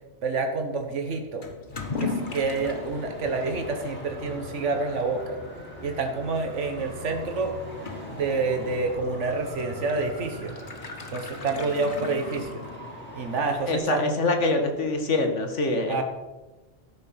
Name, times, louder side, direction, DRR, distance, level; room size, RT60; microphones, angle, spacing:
voice 1, 0.2-1.5 2.0-5.4 5.8-7.5 8.1-10.5 11.1-12.6 13.2-14.3 15.9-16.0, right 3 dB, 85° right, 5 dB, 1.7 m, -28 dB
Toilet flush / Liquid, 1.4-13.1, left 4 dB, 45° left, 1.4 m, -39 dB
Traffic noise roadway noise, 1.7-13.8, left 1 dB, 10° left, 5.1 m, -41 dB
voice 2, 13.7-16.0, left 2 dB, 85° left, 6 dB, 2.0 m, -25 dB
13.5 x 9.6 x 5.8 m, 1.1 s
omnidirectional pair, 1.2 m